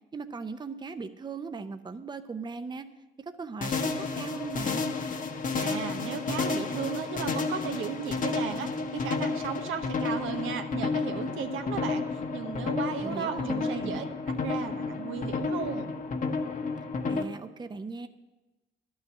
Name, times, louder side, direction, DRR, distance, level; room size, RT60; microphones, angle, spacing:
voice 1, 0.1-2.9 3.4-4.9 13.0-14.0 17.1-18.1, right 4 dB, 20° right, 9 dB, 0.7 m, -38 dB
sound 1, 3.6-17.2, left 4 dB, 40° left, 1.1 m, -31 dB
voice 2, 5.6-15.9, right 7 dB, 85° right, 6 dB, 1.0 m, -35 dB
11.5 x 6.3 x 8.4 m, 1.1 s
cardioid pair, 90°, 20 cm